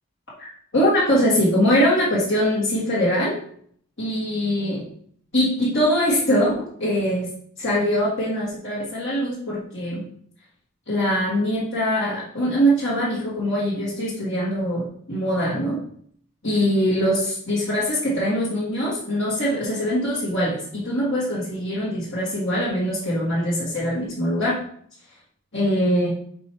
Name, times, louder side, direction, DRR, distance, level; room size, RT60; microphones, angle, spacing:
voice 1, 0.4-3.4 4.0-4.8 5.3-7.3 7.6-10.0 10.9-15.8 16.4-24.6 25.5-26.1, equal, 50° left, -9 dB, 1.6 m, -22 dB
5.2 x 4.4 x 4.6 m, 0.62 s
head